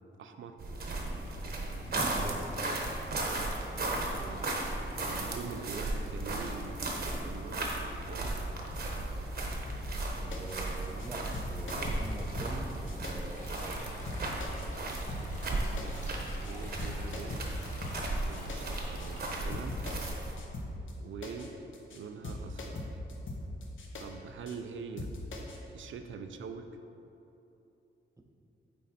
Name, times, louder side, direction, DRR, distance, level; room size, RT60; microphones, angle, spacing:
voice 1, 0.2-0.6 3.9-4.5 5.0-6.8 7.2-8.4 15.7-17.4 18.2-19.8 21.0-21.5 21.9-22.9 24.0-25.1 25.7-26.7, right 5 dB, 75° right, 7 dB, 0.5 m, -44 dB
sound 1, 0.6-20.3, right 2 dB, 50° right, 1.0 m, -35 dB
voice 2, 1.9-2.6 10.2-13.8 28.2-28.3, right 2 dB, 15° right, 3 dB, 0.5 m, -44 dB
sound 2, 9.7-10.0 10.3-10.6 10.8-11.1 11.3-13.1 13.5-13.6 14.1-14.7 14.9-15.5 15.8-16.0 16.3-16.5 16.8-18.6 19.0-19.1 19.5-20.1 20.4-20.9 21.2-21.5 21.7-22.0 22.2-24.0 24.5-24.6 25.0-25.6, left 2 dB, 75° left, 0.9 m, -40 dB
sound 3, 13.3-19.3, left 1 dB, 40° left, 1.6 m, -49 dB
8.8 x 4.2 x 4.2 m, 2.9 s
wide cardioid pair, 135°, 20 cm